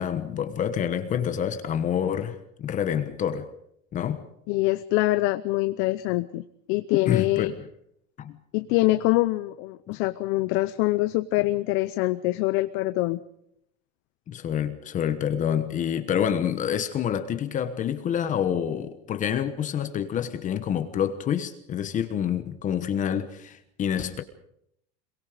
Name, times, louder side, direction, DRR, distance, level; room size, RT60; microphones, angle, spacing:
voice 1, 0.0-3.5 3.9-4.2 7.1-7.6 8.2-8.3 14.3-24.2, left 9 dB, 25° left, 1.2 m, -27 dB
voice 2, 4.5-6.4 6.7-7.5 8.5-13.2, left 18 dB, 40° left, 0.8 m, -24 dB
26.5 x 23.0 x 5.1 m
supercardioid pair, 170°, 33 cm